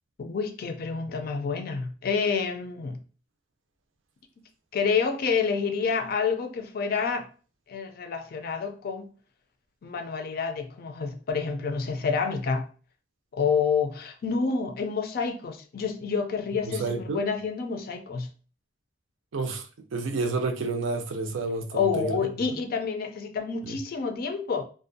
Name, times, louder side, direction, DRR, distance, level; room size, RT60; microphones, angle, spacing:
voice 1, 0.2-3.0 4.7-7.3 7.7-9.1 9.8-12.6 13.3-18.3 21.7-24.6, left 5 dB, 50° left, 0.4 m, -28 dB
voice 2, 16.6-17.2 19.3-19.7 19.9-22.2 23.7-23.8, right 3 dB, 80° right, 0.4 m, -30 dB
2.5 x 2.1 x 2.5 m
head